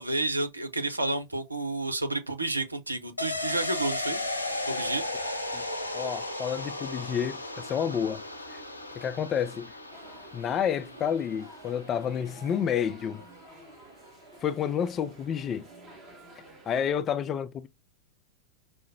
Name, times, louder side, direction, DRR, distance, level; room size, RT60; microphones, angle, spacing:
voice 1, 0.0-4.2 4.7-5.1, right 2 dB, 80° right, 0.6 m, -30 dB
sound 1, 3.2-12.6 12.9-13.0, left 2 dB, 85° left, 0.6 m, -35 dB
voice 2, 5.9-8.2 8.5-8.6 9.0-9.7 10.3-13.2 14.4-15.7 16.7-17.7, left 8 dB, 25° left, 0.3 m, -29 dB
sound 2, 9.9-16.9, right 2 dB, 25° right, 1.2 m, -51 dB
4.8 x 2.0 x 2.7 m
figure-of-eight pair, 90°, 0 cm